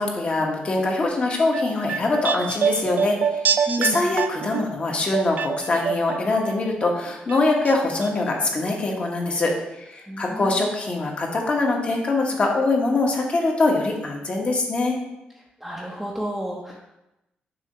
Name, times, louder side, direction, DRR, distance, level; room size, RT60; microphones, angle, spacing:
voice 1, 0.0-9.5 9.8-15.0, left 2 dB, 40° left, 0 dB, 1.2 m, -23 dB
sound 1, 1.3-6.5 6.8-7.7 8.0-8.1, right 6 dB, 60° right, 0.4 m, -26 dB
voice 2, 3.7-4.2 10.1-10.6 15.6-16.9, right 1 dB, 5° right, -2 dB, 0.7 m, -32 dB
6.8 x 2.8 x 5.5 m, 0.92 s
cardioid pair, 115°, 3 cm